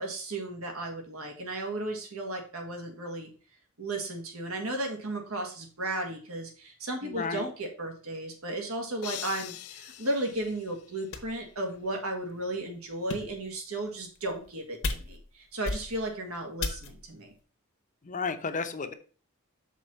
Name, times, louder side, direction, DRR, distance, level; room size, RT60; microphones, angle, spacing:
voice 1, 0.0-3.3 3.8-17.3, right 1 dB, 75° right, 2 dB, 1.8 m, -34 dB
voice 2, 7.0-7.5 16.7-16.8 18.0-18.9, left 4 dB, 35° left, 8 dB, 0.7 m, -33 dB
sound 1, 9.0-11.3, left 13 dB, 75° left, 0.5 m, -43 dB
sound 2, 10.4-10.5 11.1-11.5 12.1-12.2 12.9-13.5 14.2-14.5 14.8-15.3 15.6-16.2 16.6-17.1, left 3 dB, 60° left, 1.1 m, -35 dB
6.2 x 4.3 x 5.4 m, 0.39 s
head